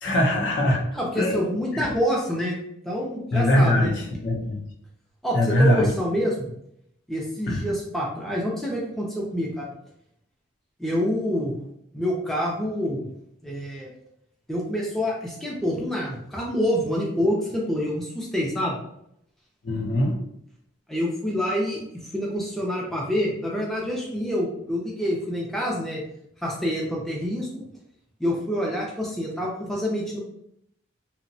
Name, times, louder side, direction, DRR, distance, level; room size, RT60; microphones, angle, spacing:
voice 1, 0.0-0.8 1.2-1.4 1.7-1.8 3.3-4.6 5.3-5.9 7.5-7.6 19.6-20.2, left 1 dB, 60° left, 0 dB, 0.6 m, -21 dB
voice 2, 0.9-2.6 2.8-3.9 5.2-6.5 7.1-9.7 10.8-11.5 11.9-13.0 13.4-13.9 14.5-18.8 20.9-21.8 22.1-26.0 26.4-27.6 28.2-30.2, equal, ahead, -4 dB, 0.4 m, -27 dB
2.7 x 2.1 x 2.6 m, 0.74 s
head